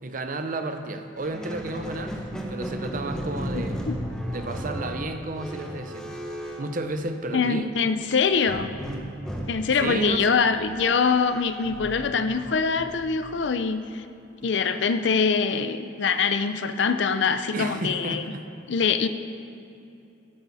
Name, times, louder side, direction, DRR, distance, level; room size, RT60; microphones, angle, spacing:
voice 1, 0.0-2.2 2.5-3.8 4.3-6.2 6.6-7.7 9.8-10.4 17.5-18.5, right 2 dB, 45° right, 7 dB, 0.7 m, -32 dB
Squeak, 1.2-7.5 8.5-13.6, equal, 5° left, 1.0 m, -35 dB
voice 2, 3.5-4.0 7.3-8.7 9.5-14.0 14.4-18.3 18.7-19.1, left 5 dB, 70° left, 10 dB, 0.5 m, -24 dB
14.0 x 8.9 x 4.1 m, 2.8 s
head